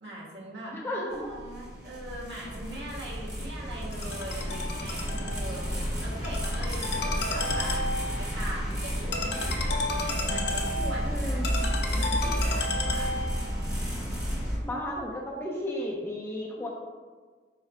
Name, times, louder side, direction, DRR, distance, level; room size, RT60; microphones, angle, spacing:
voice 1, 0.0-7.8 8.2-13.1, right 1 dB, 80° right, -4 dB, 1.4 m, -41 dB
voice 2, 0.7-1.3 11.0-11.5 14.6-16.7, left 1 dB, 15° left, -3 dB, 0.6 m, -33 dB
sound 1, 1.1-14.6, equal, 20° right, 1.0 m, -32 dB
Ringtone, 3.9-13.5, left 2 dB, 70° left, 0.5 m, -33 dB
4.8 x 2.3 x 4.3 m, 1.5 s
head